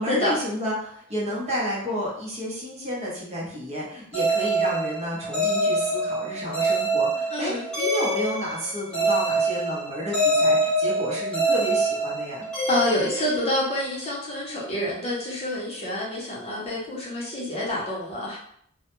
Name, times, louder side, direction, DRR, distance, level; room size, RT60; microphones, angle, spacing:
voice 1, 0.0-12.5, equal, 35° right, -5 dB, 0.8 m, -30 dB
sound 1, 4.1-13.9, right 2 dB, 5° left, 1.0 m, -25 dB
voice 2, 7.3-7.6 12.7-18.4, left 1 dB, 30° left, -6 dB, 0.7 m, -27 dB
2.2 x 2.1 x 3.0 m, 0.67 s
head